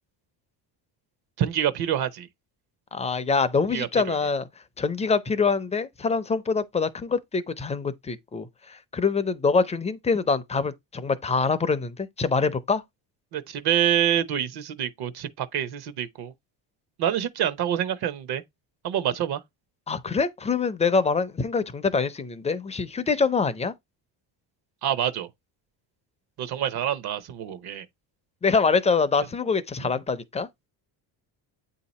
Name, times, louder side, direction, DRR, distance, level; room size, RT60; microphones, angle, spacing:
voice 1, 1.4-2.3 3.7-4.2 13.3-16.3 17.0-18.4 18.8-19.4 24.8-25.3 26.4-27.8, right 10 dB, 55° right, 0.8 m, -26 dB
voice 2, 2.9-4.5 4.8-12.8 19.9-23.7 28.4-30.5, left 4 dB, 15° left, 0.4 m, -25 dB
8.3 x 2.8 x 4.1 m
cardioid pair, 135°, 45 cm